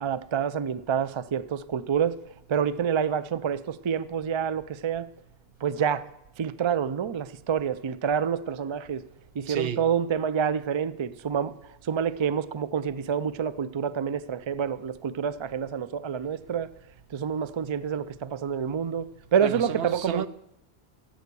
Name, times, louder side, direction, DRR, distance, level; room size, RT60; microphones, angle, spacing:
voice 1, 0.0-2.2 2.5-5.1 5.6-6.0 6.4-9.0 9.4-11.5 11.8-16.7 17.1-19.1 19.3-20.2, right 7 dB, 50° right, 0.3 m, -27 dB
voice 2, 9.5-9.8 19.4-20.3, right 9 dB, 70° right, 0.8 m, -31 dB
15.5 x 7.8 x 6.8 m
omnidirectional pair, 1.1 m